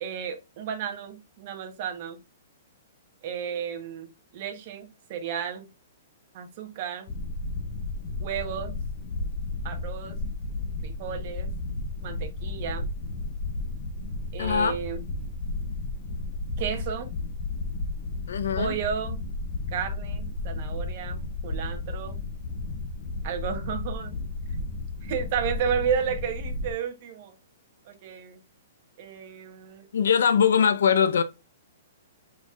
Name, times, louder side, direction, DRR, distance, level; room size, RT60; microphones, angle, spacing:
voice 1, 0.0-2.2 3.2-5.7 6.3-7.1 8.2-8.8 9.6-10.2 10.8-11.5 12.0-12.9 14.3-15.0 16.6-17.1 18.6-19.2 19.7-22.2 23.2-24.2 25.0-27.3 27.8-28.4 29.0-29.8, right 7 dB, 35° right, 1.0 m, -32 dB
sound 1, 7.1-26.7, left 2 dB, 40° left, 0.7 m, -33 dB
voice 2, 14.4-14.7 18.3-18.7 29.9-31.2, left 7 dB, 80° left, 0.7 m, -21 dB
4.5 x 4.1 x 2.4 m
hypercardioid pair, 170°, 0 cm